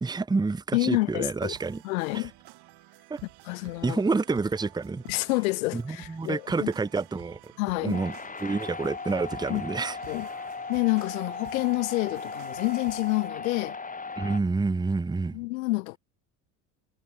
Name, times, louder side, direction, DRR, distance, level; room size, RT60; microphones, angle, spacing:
voice 1, 0.0-1.8 2.1-2.3 3.1-3.2 3.8-5.0 5.7-7.5 7.8-8.1 8.4-10.0 14.2-15.4, right 3 dB, 10° right, 0.7 m, -28 dB
voice 2, 0.7-1.5 1.8-2.3 3.5-4.0 5.1-6.7 7.6-8.0 9.5-9.6 10.1-10.3 10.7-13.8 15.3-16.0, left 23 dB, 90° left, 0.7 m, -28 dB
sound 1, 1.5-13.3, right 19 dB, 70° right, 8.0 m, -52 dB
sound 2, 7.9-14.4, left 4 dB, 20° left, 2.0 m, -37 dB
hypercardioid pair, 70°, 40 cm